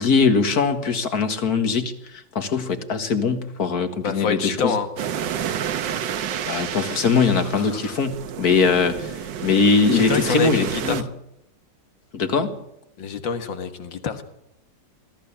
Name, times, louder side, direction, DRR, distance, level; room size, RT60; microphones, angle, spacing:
voice 1, 0.0-4.8 6.4-9.1 9.4-11.0 12.1-12.6, left 4 dB, 55° left, 2.2 m, -21 dB
voice 2, 4.0-4.9 7.5-7.9 9.8-11.1 13.0-14.2, left 6 dB, 90° left, 2.2 m, -27 dB
sound 1, 5.0-11.0, right 8 dB, 80° right, 1.7 m, -30 dB
21.5 x 14.0 x 8.8 m
omnidirectional pair, 2.0 m